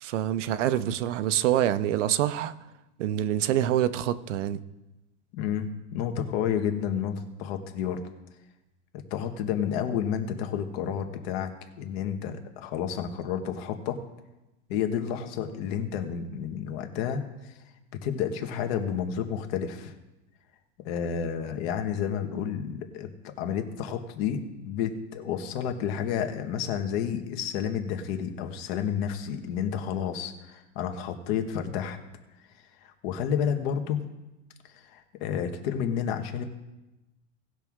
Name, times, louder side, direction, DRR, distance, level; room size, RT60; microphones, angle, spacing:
voice 1, 0.0-2.5 3.0-4.6, right 11 dB, 80° right, 14 dB, 0.8 m, -26 dB
voice 2, 5.3-8.1 8.9-14.0 14.7-17.5 18.0-19.9 20.8-32.0 32.8-34.0 34.7-36.4, left 8 dB, 55° left, 6 dB, 1.5 m, -30 dB
18.5 x 6.1 x 3.7 m, 1.0 s
supercardioid pair, 140°, 36 cm